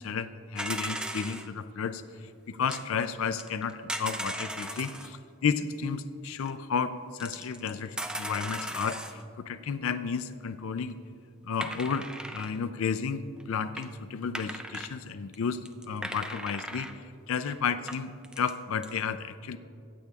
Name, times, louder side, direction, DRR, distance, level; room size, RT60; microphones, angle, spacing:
voice 1, 0.0-2.0 2.5-11.0 11.4-19.6, left 6 dB, 70° left, 11 dB, 0.4 m, -32 dB
sound 1, 0.6-1.5 2.7-2.8 3.4-5.1 6.4-6.5 7.2-9.2 11.6-12.6 13.4-13.5 13.8-13.9 14.3-14.9 15.3-15.4 15.6-16.9 17.5-17.6 17.9-18.5 18.8-18.9, right 1 dB, 5° right, 0.3 m, -37 dB
23.5 x 8.4 x 2.4 m, 2.5 s
head